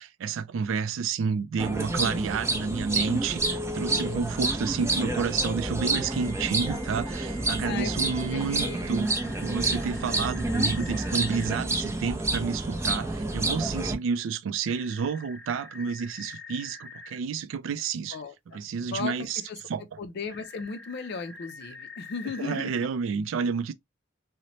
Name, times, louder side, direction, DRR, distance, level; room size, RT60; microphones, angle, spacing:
voice 1, 0.0-9.1 9.4-18.2 18.5-19.4 19.7-19.8 22.4-23.7, right 5 dB, 75° right, 0.3 m, -30 dB
sound 1, 1.6-14.0, right 2 dB, 15° right, 0.4 m, -29 dB
Telephone, 3.4-4.2 6.0-11.5 14.6-17.2 20.3-22.8, left 3 dB, 10° left, 0.8 m, -44 dB
voice 2, 8.3-8.9 18.1-18.6 18.9-19.1 19.5-19.6 20.0-22.7, left 5 dB, 55° left, 0.4 m, -36 dB
3.0 x 2.1 x 2.6 m
head